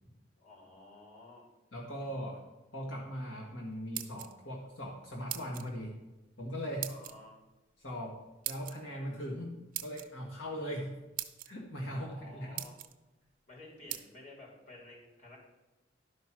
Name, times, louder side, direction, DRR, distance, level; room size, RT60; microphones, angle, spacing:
voice 1, 0.4-1.5 6.9-7.4 11.9-12.8 13.5-15.4, left 2 dB, 40° left, -3 dB, 3.6 m, -52 dB
voice 2, 1.7-2.4 2.7-5.9 6.4-6.9 7.8-8.2 8.5-10.9 11.5-12.6, equal, 75° left, -2 dB, 1.8 m, -39 dB
sound 1, 3.7-4.6 5.3-5.7 6.8-7.1 8.4-8.8 9.7-10.1 10.8-10.9 11.2-11.5 12.1-12.2 12.6-12.9 13.9-14.0, right 13 dB, 45° right, 0.7 m, -39 dB
12.0 x 5.2 x 6.1 m, 1.1 s
head